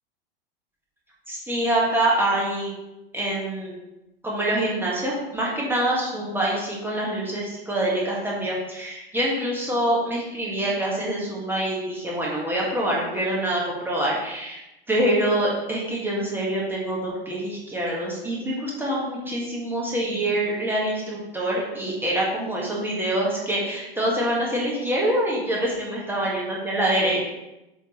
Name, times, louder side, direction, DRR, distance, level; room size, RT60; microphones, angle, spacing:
voice 1, 1.3-2.7 3.1-3.8 4.2-14.6 14.9-27.2, right 1 dB, 5° right, -5 dB, 1.7 m, -25 dB
8.0 x 3.8 x 3.2 m, 0.93 s
hypercardioid pair, 100°, 29 cm